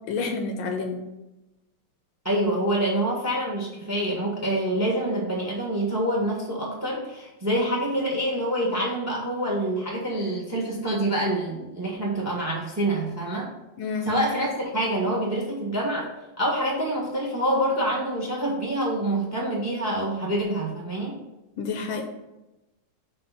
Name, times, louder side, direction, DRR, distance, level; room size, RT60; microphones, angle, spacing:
voice 1, 0.1-1.0 13.8-14.1 21.6-22.1, left 4 dB, 75° left, 4 dB, 1.4 m, -29 dB
voice 2, 2.2-13.5 14.0-16.1 16.4-21.2, right 1 dB, 10° right, -2 dB, 0.9 m, -26 dB
6.0 x 3.2 x 5.6 m, 0.98 s
omnidirectional pair, 2.4 m